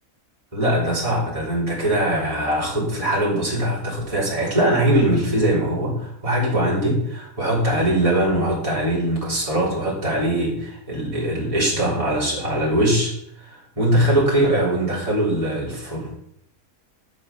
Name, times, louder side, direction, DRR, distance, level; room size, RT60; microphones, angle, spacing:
voice 1, 0.5-16.2, right 1 dB, 20° right, -6 dB, 3.8 m, -21 dB
11.5 x 6.2 x 6.1 m, 0.72 s
omnidirectional pair, 1.5 m